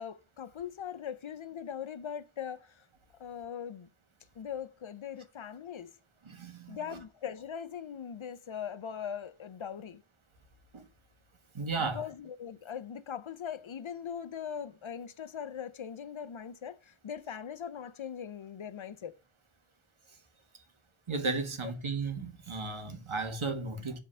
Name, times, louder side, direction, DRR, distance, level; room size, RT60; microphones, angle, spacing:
voice 1, 0.0-2.8 3.2-3.9 4.4-5.9 6.7-10.0 11.8-19.1, left 8 dB, 80° left, 0.7 m, -40 dB
voice 2, 6.2-6.8 10.7-10.9 11.5-12.0 21.1-24.0, right 3 dB, 85° right, 1.4 m, -34 dB
7.6 x 3.9 x 5.4 m
wide cardioid pair, 40°, 47 cm